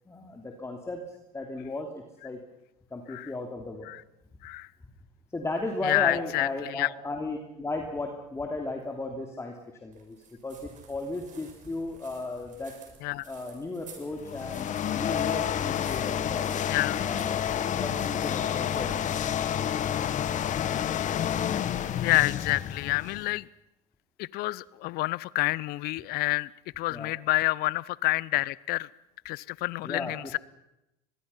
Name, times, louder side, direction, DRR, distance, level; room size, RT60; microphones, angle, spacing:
voice 1, 0.1-1.0 1.3-2.4 2.9-3.9 5.3-10.2 10.4-12.8 13.3-16.5 17.0-17.4 17.8-19.2 26.9-27.1 29.8-30.3, left 2 dB, 15° left, 2 dB, 3.0 m, -35 dB
voice 2, 5.8-6.9 13.0-13.3 16.7-17.0 21.5-21.6 22.0-23.5 24.2-28.9 29.2-30.4, left 19 dB, 60° left, 22 dB, 0.7 m, -28 dB
sound 1, 9.9-19.8, right 6 dB, 45° right, 6.6 m, -54 dB
sound 2, 14.1-23.3, left 9 dB, 45° left, 1.5 m, -29 dB
24.0 x 21.5 x 5.7 m, 0.88 s
hypercardioid pair, 90°, 18 cm